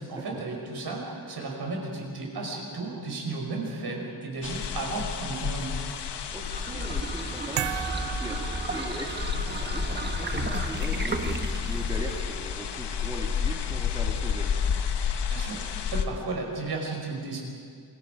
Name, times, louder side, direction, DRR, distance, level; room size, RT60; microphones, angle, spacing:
voice 1, 0.0-5.7 15.3-17.4, right 3 dB, 65° right, 0 dB, 5.1 m, -34 dB
sound 1, 4.4-16.1, left 7 dB, 75° left, 1.3 m, -31 dB
voice 2, 6.3-8.4 8.7-14.5, right 1 dB, 10° right, 0 dB, 2.3 m, -40 dB
sound 2, 6.3-12.3, right 3 dB, 25° right, 1.1 m, -34 dB
sound 3, 7.6-9.5, right 12 dB, 85° right, 0.7 m, -35 dB
27.5 x 22.5 x 5.2 m, 2.1 s
wide cardioid pair, 170°, 41 cm